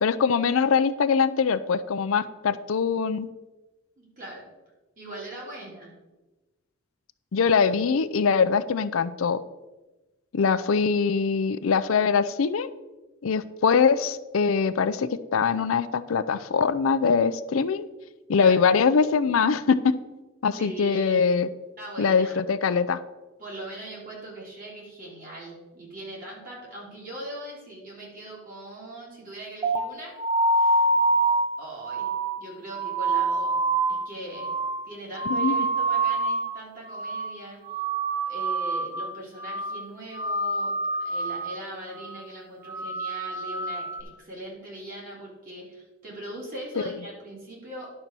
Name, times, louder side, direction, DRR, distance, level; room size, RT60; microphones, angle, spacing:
voice 1, 0.0-3.3 7.3-9.4 10.3-12.7 13.2-17.9 18.3-20.0 20.4-21.5 22.0-23.0 35.3-35.7, left 5 dB, 75° left, 12 dB, 0.5 m, -23 dB
voice 2, 4.0-4.5 5.0-5.9 18.4-18.6 20.5-21.2 21.8-22.4 23.4-30.1 30.5-30.9 31.6-32.1 32.4-33.6 33.9-34.5 34.8-37.6 38.2-40.7 41.0-47.9, right 1 dB, 40° right, -4 dB, 3.3 m, -40 dB
sound 1, 29.6-36.6 36.9-37.4 37.6-39.1 39.4-39.8 40.1-41.6 41.9-42.3 42.6-44.0, right 2 dB, 25° right, 0.7 m, -26 dB
10.5 x 4.4 x 6.8 m, 1.1 s
head